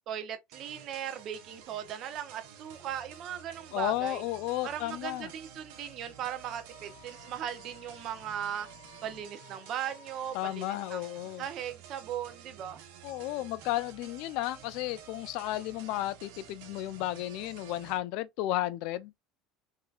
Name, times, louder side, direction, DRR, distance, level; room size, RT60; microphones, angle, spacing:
voice 1, 0.1-4.2 4.6-8.7 9.0-12.8, right 10 dB, 50° right, 0.7 m, -38 dB
sound 1, 0.5-18.0, right 8 dB, 80° right, 0.9 m, -51 dB
voice 2, 3.7-5.3 10.3-11.4 13.0-19.1, left 15 dB, 70° left, 0.3 m, -33 dB
Wind instrument woodwind instrument, 6.7-11.1, left 17 dB, 90° left, 0.7 m, -57 dB
3.7 x 2.2 x 2.3 m
supercardioid pair, 115°, 0 cm